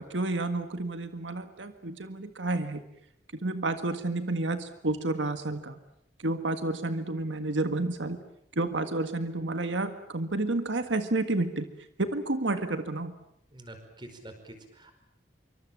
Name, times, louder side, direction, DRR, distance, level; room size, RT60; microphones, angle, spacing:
voice 1, 0.0-2.8 3.4-5.8 6.2-8.2 8.5-11.7 12.0-13.1, right 2 dB, 90° right, 8 dB, 1.7 m, -30 dB
voice 2, 13.5-14.9, right 1 dB, 25° right, 7 dB, 4.9 m, -46 dB
26.0 x 24.5 x 7.6 m, 0.77 s
head